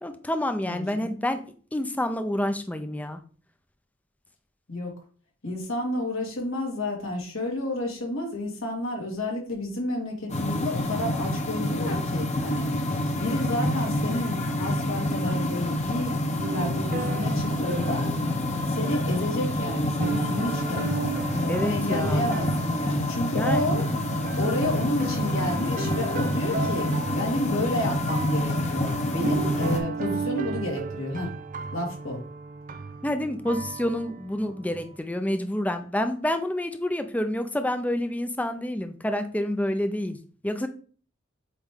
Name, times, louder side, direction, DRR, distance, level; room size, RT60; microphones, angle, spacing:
voice 1, 0.0-1.4 1.7-3.2 21.5-22.3 23.3-23.6 33.0-40.2 40.4-40.7, left 1 dB, 10° left, 8 dB, 0.5 m, -28 dB
voice 2, 0.7-1.1 4.7-4.9 5.4-18.1 18.7-23.9 24.3-31.3 31.7-32.2, left 1 dB, 90° left, -1 dB, 2.3 m, -31 dB
sound 1, 10.3-29.8, left 1 dB, 35° left, 0.9 m, -27 dB
sound 2, 16.4-35.0, right 4 dB, 40° right, 0.4 m, -35 dB
8.1 x 3.1 x 3.7 m, 0.42 s
head